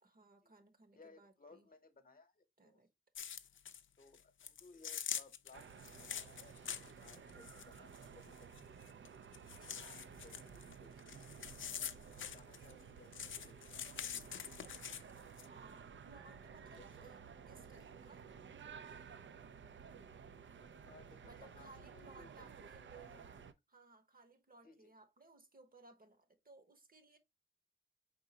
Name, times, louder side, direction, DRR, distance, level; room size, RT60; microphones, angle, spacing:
voice 1, 0.0-1.7 2.6-2.9 15.5-17.2 17.5-18.4 21.2-23.4 23.7-27.2, right 3 dB, 50° right, 1.0 m, -61 dB
voice 2, 0.9-2.8 4.0-8.5 9.6-11.5 11.9-13.9 16.8-17.1 20.6-23.2 24.6-24.9, left 3 dB, 45° left, 0.9 m, -63 dB
sound 1, 3.1-3.8 4.1-9.1 9.3-12.8 13.1-15.5, left 8 dB, 85° left, 0.4 m, -45 dB
sound 2, 5.5-23.5, right 6 dB, 75° right, 0.5 m, -54 dB
4.9 x 3.6 x 2.7 m
wide cardioid pair, 95°, 20 cm